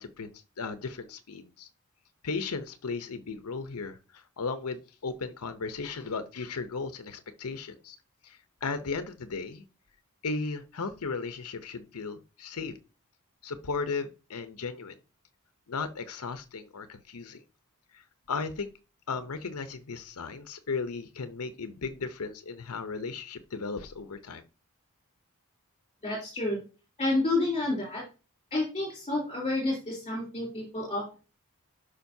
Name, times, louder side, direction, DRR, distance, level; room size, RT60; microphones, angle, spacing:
voice 1, 0.0-1.7 2.2-8.0 8.2-9.6 10.2-12.7 13.4-15.0 15.7-17.4 17.9-18.7 19.1-24.4, left 4 dB, 80° left, 10 dB, 0.7 m, -36 dB
voice 2, 26.0-26.6 27.0-28.0 28.5-31.2, left 2 dB, 25° left, -4 dB, 3.5 m, -29 dB
11.5 x 5.1 x 2.7 m, 0.32 s
head